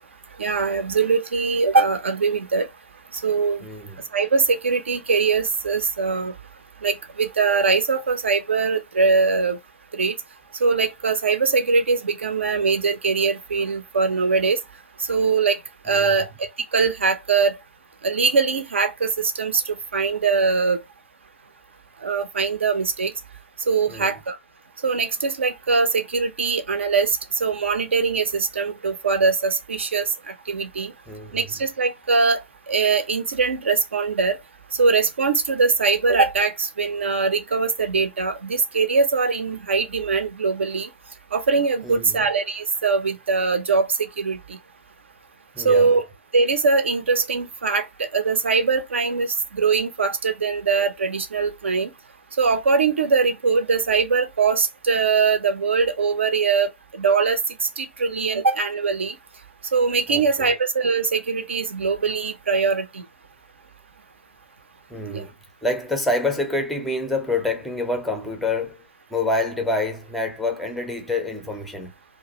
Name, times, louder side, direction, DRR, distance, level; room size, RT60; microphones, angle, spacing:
voice 1, 0.4-2.7 3.2-3.6 4.1-6.3 6.8-9.6 10.0-10.1 10.6-14.6 15.1-15.6 15.9-16.3 16.7-17.6 18.0-19.1 19.4-20.8 22.0-23.1 23.7-24.4 24.8-30.1 30.5-30.9 31.3-32.4 32.7-34.3 34.8-40.9 41.3-44.6 45.6-46.0 46.3-47.9 48.1-51.9 52.4-56.7 56.9-57.4 57.8-59.1 59.7-62.9 65.1-65.2, right 4 dB, 65° right, 0.6 m, -22 dB
voice 2, 3.6-4.0 15.9-16.3 23.9-24.2 31.1-31.5 41.8-42.3 45.5-45.9 60.1-60.5 64.9-65.3 65.6-68.8 69.1-71.9, left 2 dB, ahead, 0.5 m, -27 dB
2.6 x 2.1 x 3.8 m
figure-of-eight pair, 120°, 7 cm